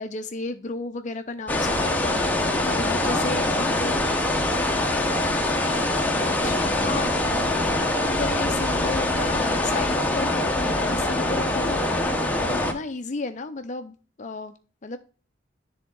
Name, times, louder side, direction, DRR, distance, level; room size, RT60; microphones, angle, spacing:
voice 1, 0.0-2.2 2.7-4.0 6.2-7.1 8.0-11.9 12.4-14.5 14.8-15.0, left 3 dB, 40° left, 8 dB, 0.5 m, -33 dB
sound 1, 1.5-12.7, left 1 dB, 10° left, 0.9 m, -24 dB
voice 2, 3.0-5.3 6.3-7.1 7.5-7.9, equal, 10° right, 3 dB, 1.4 m, -37 dB
10.5 x 3.6 x 3.8 m, 0.37 s
head